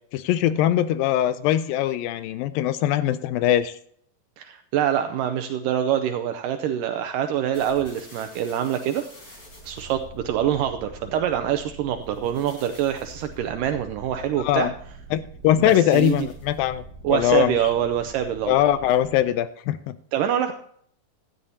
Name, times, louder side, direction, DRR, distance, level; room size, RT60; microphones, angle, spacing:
voice 1, 0.1-3.8 14.4-14.7 15.1-16.8 17.1-17.6 18.5-20.0, left 11 dB, 80° left, 13 dB, 2.2 m, -21 dB
voice 2, 4.4-9.0 9.7-14.7 15.6-16.3 17.0-18.5 20.1-20.5, right 10 dB, 80° right, 8 dB, 2.1 m, -25 dB
sound 1, 7.5-19.3, right 2 dB, 25° left, 4.5 m, -44 dB
16.5 x 12.5 x 2.8 m, 0.65 s
omnidirectional pair, 4.3 m